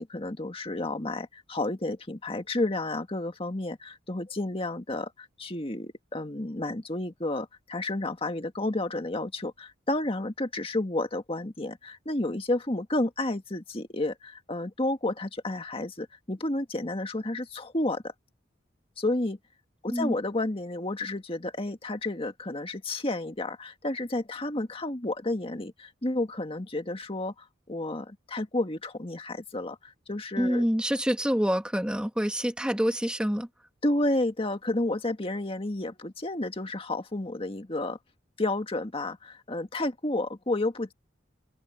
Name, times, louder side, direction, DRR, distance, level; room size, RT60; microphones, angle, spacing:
voice 1, 0.0-18.1 19.0-19.4 19.8-30.7 33.8-38.0 38.4-40.9, left 2 dB, 30° left, 1.8 m, -31 dB
voice 2, 30.4-33.5, equal, 5° right, 1.7 m, -26 dB
head